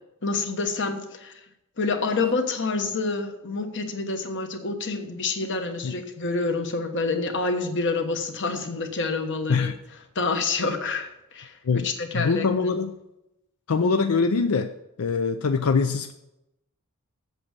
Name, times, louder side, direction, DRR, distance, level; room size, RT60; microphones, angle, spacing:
voice 1, 0.2-1.3 1.8-9.7 10.1-12.8, left 3 dB, 60° left, 6 dB, 1.3 m, -28 dB
voice 2, 12.1-12.9 13.7-14.7 15.0-16.1, left 4 dB, 90° left, 8 dB, 0.5 m, -23 dB
8.1 x 7.1 x 7.5 m, 0.88 s
head